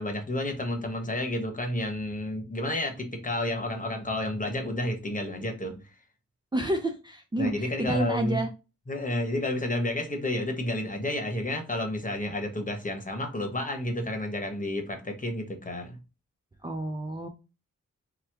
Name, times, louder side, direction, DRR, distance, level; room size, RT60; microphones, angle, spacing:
voice 1, 0.0-5.8 7.4-8.4 8.9-16.0, left 1 dB, 25° left, 1.1 m, -31 dB
voice 2, 6.5-8.5 16.6-17.3, right 1 dB, 15° right, 0.5 m, -29 dB
2.9 x 2.2 x 3.4 m
supercardioid pair, 45°, 31 cm